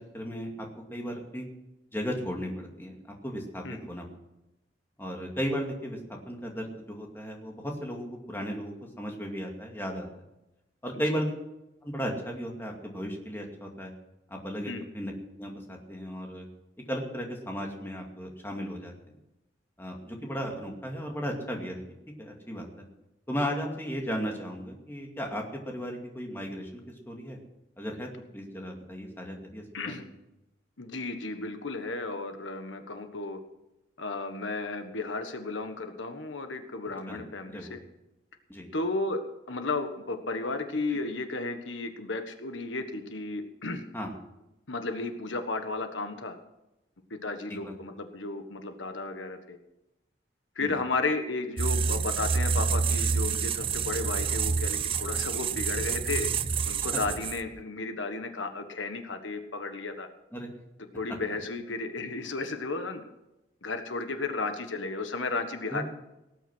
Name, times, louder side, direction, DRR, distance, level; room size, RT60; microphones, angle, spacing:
voice 1, 0.1-1.5 1.9-3.0 3.2-4.1 5.0-10.1 10.8-11.3 11.8-13.9 14.3-15.1 15.4-16.5 16.9-19.2 19.8-21.8 22.2-22.8 23.3-27.4 27.8-30.1 37.1-37.2 37.5-37.8 38.5-38.7 40.9-41.0 43.9-44.1 47.6-47.8 50.6-50.8 56.8-57.0 60.3-60.5 65.7-65.8, equal, 10° left, 1 dB, 2.4 m, -35 dB
voice 2, 30.8-33.4 34.0-37.8 38.7-39.2 39.5-43.8 44.7-46.3 47.1-49.6 50.6-56.3 56.6-60.1 60.9-63.0 63.6-65.8, left 3 dB, 80° left, 7 dB, 1.5 m, -33 dB
sound 1, 51.6-57.6, right 5 dB, 30° right, 0.5 m, -28 dB
18.0 x 9.2 x 6.2 m, 0.93 s
head